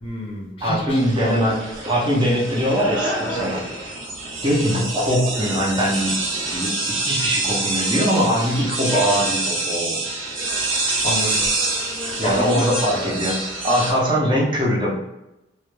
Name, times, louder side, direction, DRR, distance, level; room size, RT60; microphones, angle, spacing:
voice 1, 0.0-1.6 3.3-3.5 11.0-11.4 12.2-13.1, equal, 30° left, -2 dB, 0.5 m, -29 dB
voice 2, 0.6-3.6 4.4-6.2 6.5-10.0 12.2-13.4 13.6-14.9, equal, 25° right, -4 dB, 0.5 m, -21 dB
sound 1, 0.9-13.9, right 2 dB, 75° right, 0.6 m, -26 dB
2.2 x 2.1 x 3.0 m, 0.93 s
head